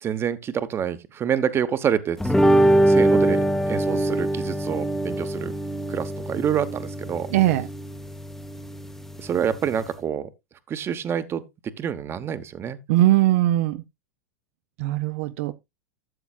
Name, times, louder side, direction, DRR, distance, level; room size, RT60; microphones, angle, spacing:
voice 1, 0.0-2.3 2.8-5.5 5.9-7.3 9.2-10.3 10.7-11.4 11.8-12.8, right 8 dB, 30° right, 1.0 m, -27 dB
sound 1, 2.2-9.9, right 1 dB, 5° left, 0.9 m, -23 dB
voice 2, 7.3-7.7 12.9-13.8 14.8-15.5, right 15 dB, 65° right, 0.7 m, -20 dB
13.0 x 7.1 x 2.4 m
hypercardioid pair, 110°, 8 cm